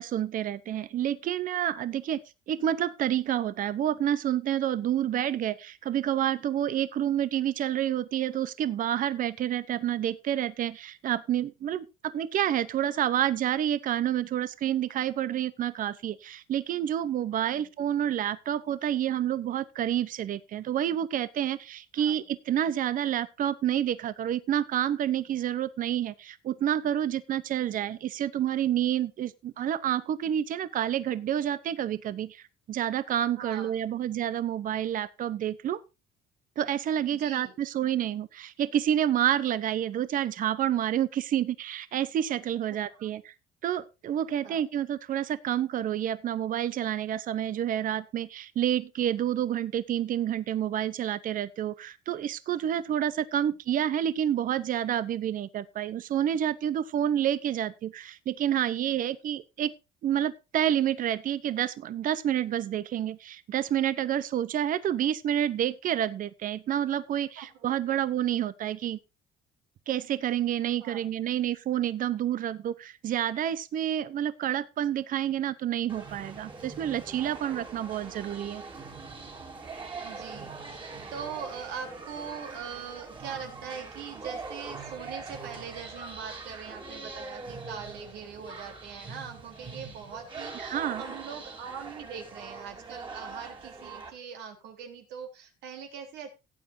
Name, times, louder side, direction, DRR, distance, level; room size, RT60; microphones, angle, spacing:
voice 1, 0.0-2.2 2.5-35.8 36.6-43.3 43.6-59.7 60.0-69.0 69.9-78.6 90.5-91.0, right 10 dB, 55° right, 0.8 m, -29 dB
voice 2, 33.4-33.7 37.1-37.5 42.7-43.1 44.4-44.6 67.4-67.5 67.9-68.0 70.8-71.0 78.0-78.5 80.0-96.3, right 7 dB, 85° right, 3.5 m, -42 dB
sound 1, 75.9-94.1, right 4 dB, 30° right, 3.1 m, -42 dB
17.0 x 8.8 x 2.7 m
cardioid pair, 110°, 17 cm